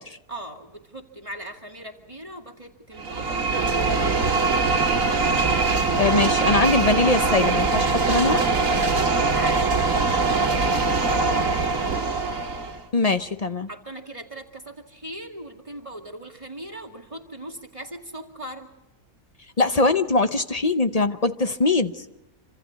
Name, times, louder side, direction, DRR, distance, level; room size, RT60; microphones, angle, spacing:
voice 1, 0.3-4.4 9.3-12.3 13.7-18.7, right 1 dB, 20° right, 2 dB, 2.2 m, -40 dB
sound 1, 3.0-12.8, right 3 dB, 55° right, 2.3 m, -22 dB
voice 2, 6.0-8.4 12.9-13.7 19.6-22.0, left 3 dB, 35° left, 10 dB, 0.6 m, -22 dB
27.5 x 25.5 x 4.1 m, 1.0 s
omnidirectional pair, 1.6 m